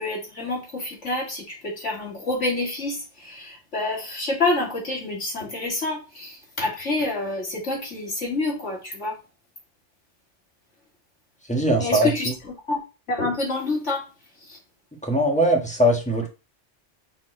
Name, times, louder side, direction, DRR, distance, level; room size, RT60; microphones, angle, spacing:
voice 1, 0.0-9.2 11.7-12.3 12.7-12.8 13.1-14.1 14.4-14.6, left 2 dB, 90° left, 3.0 m, -27 dB
voice 2, 11.5-12.1 15.0-16.3, right 1 dB, 5° left, 1.5 m, -20 dB
6.3 x 4.4 x 4.4 m
omnidirectional pair, 1.2 m